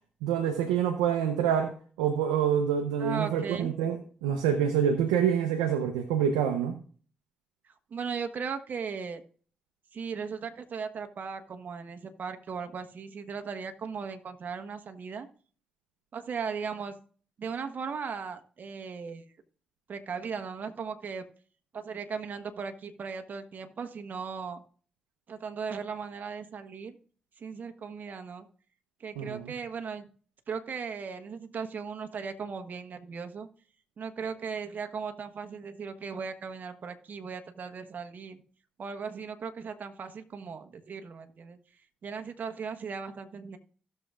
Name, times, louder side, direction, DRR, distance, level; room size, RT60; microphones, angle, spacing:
voice 1, 0.2-1.7 2.0-6.8 29.2-29.5, right 8 dB, 90° right, 5 dB, 0.8 m, -26 dB
voice 2, 3.0-3.7 7.6-9.2 9.9-15.3 16.1-16.9 17.4-19.2 19.9-21.2 21.7-24.6 25.3-27.0 27.4-28.5 29.0-30.1 30.5-33.5 34.0-38.4 38.8-41.6 42.0-43.6, right 5 dB, 55° right, 7 dB, 1.2 m, -37 dB
16.5 x 6.8 x 2.5 m, 0.43 s
hypercardioid pair, 40°, 4 cm